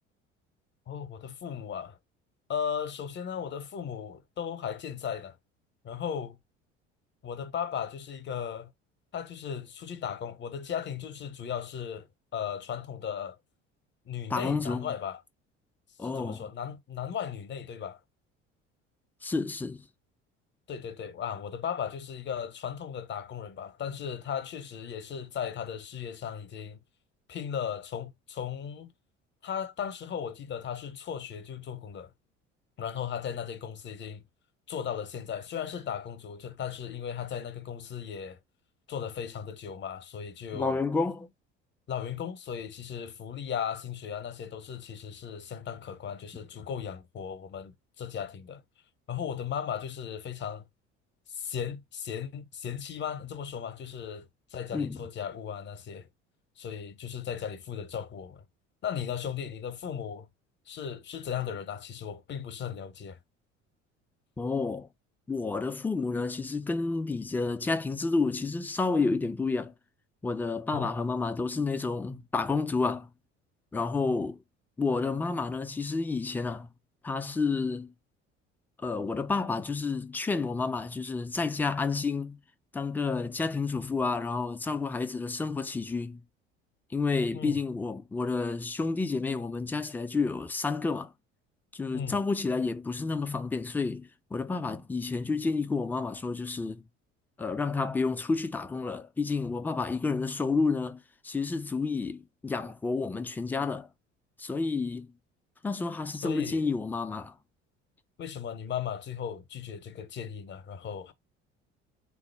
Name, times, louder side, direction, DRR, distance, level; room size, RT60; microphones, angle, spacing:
voice 1, 0.9-2.0 2.5-5.4 5.8-6.4 7.2-8.7 9.1-12.1 12.3-13.4 14.1-15.2 16.0-18.0 20.7-26.8 27.3-28.9 29.4-32.1 32.8-34.2 34.7-38.4 38.9-40.8 41.9-48.6 49.1-50.7 51.3-56.1 56.6-58.4 58.8-60.3 60.7-63.2 70.7-70.9 87.3-87.6 91.9-92.2 106.2-106.7 108.2-111.1, left 8 dB, 30° left, 0.7 m, -36 dB
voice 2, 14.3-14.9 16.0-16.5 19.2-19.8 40.5-41.3 54.7-55.0 64.4-64.9 65.3-69.7 70.2-73.1 73.7-74.4 74.8-76.7 77.0-77.9 78.8-82.4 82.7-86.2 86.9-91.1 91.7-96.8 97.4-103.9 104.4-105.1 105.6-107.3, left 4 dB, 5° left, 0.3 m, -30 dB
3.7 x 2.0 x 3.3 m
figure-of-eight pair, 60°, 36 cm